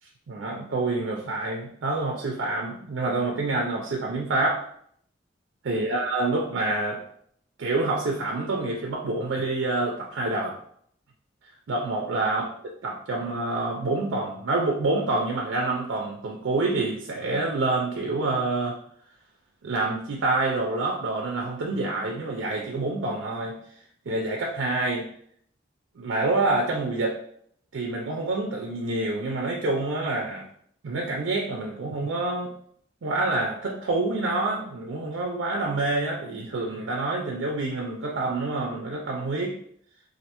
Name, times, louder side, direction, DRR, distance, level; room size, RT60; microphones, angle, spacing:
voice 1, 0.3-4.6 5.6-7.0 7.6-10.6 11.7-12.4 12.8-18.8 19.6-23.6 24.1-25.1 26.0-27.2 27.7-30.5 30.8-32.5 33.0-39.6, right 2 dB, 75° right, 0 dB, 0.5 m, -27 dB
3.2 x 2.5 x 2.9 m, 0.66 s
head